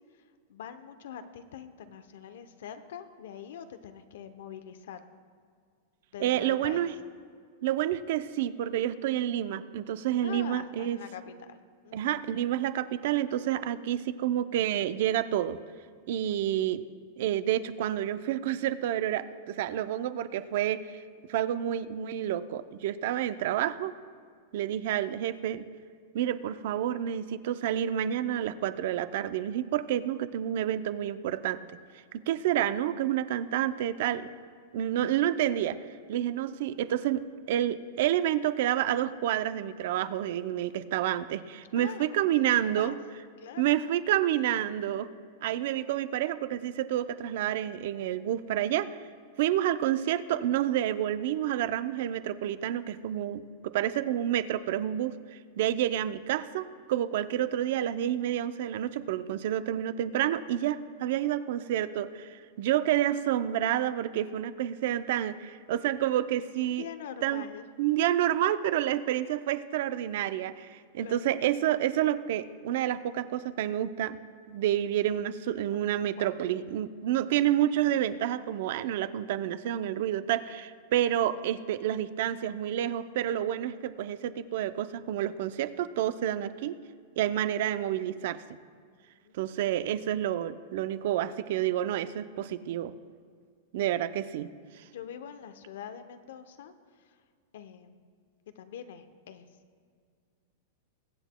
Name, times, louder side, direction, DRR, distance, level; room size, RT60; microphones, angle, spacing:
voice 1, 0.2-5.1 6.1-6.9 10.2-11.6 11.8-12.1 16.2-16.5 41.7-43.0 43.4-43.8 66.6-67.6 71.0-71.4 75.7-76.3 89.2-89.4 94.0-94.1 94.9-97.2 97.5-98.1 98.6-99.5, left 9 dB, 75° left, 10 dB, 0.7 m, -44 dB
voice 2, 6.2-6.9 7.6-11.0 11.9-15.6 16.1-16.8 17.2-21.0 21.3-23.9 24.5-25.7 26.1-31.6 32.1-34.3 34.7-35.8 36.1-43.0 43.6-45.1 45.4-48.9 49.4-66.9 67.2-67.4 67.8-74.2 74.5-86.8 87.2-88.4 89.3-92.9 93.7-94.5 94.8-94.9, right 11 dB, 60° right, 13 dB, 0.5 m, -29 dB
22.5 x 8.1 x 2.2 m, 2.1 s
supercardioid pair, 150°, 0 cm